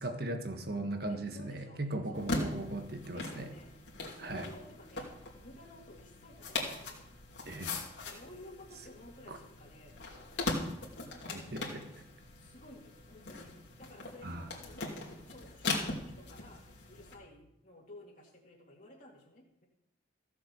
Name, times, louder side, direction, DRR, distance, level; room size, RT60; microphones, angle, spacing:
voice 1, 0.0-3.5 4.2-4.5 7.4-7.8 9.3-9.4 11.3-11.8 14.2-14.5, right 1 dB, 55° right, 6 dB, 1.5 m, -38 dB
voice 2, 1.1-2.3 3.1-3.7 4.0-5.1 5.4-7.0 8.0-9.9 11.3-11.5 12.3-13.5 13.8-14.9 15.2-16.6 16.9-19.7, left 1 dB, 45° left, -3 dB, 2.3 m, -54 dB
sound 1, 2.1-17.1, left 2 dB, 65° left, 2.7 m, -40 dB
15.5 x 7.1 x 7.0 m, 0.86 s
head